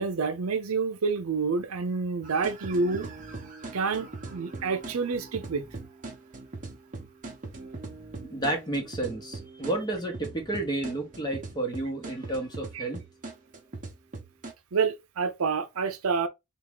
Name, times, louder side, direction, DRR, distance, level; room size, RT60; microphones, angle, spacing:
voice 1, 0.0-3.1 3.7-5.7 12.7-12.8 14.7-16.3, right 4 dB, 75° right, 0.6 m, -28 dB
sound 1, 2.2-14.5, right 3 dB, 35° right, 0.9 m, -41 dB
voice 2, 8.2-13.0, right 2 dB, 20° left, 1.0 m, -31 dB
3.6 x 2.4 x 3.5 m
head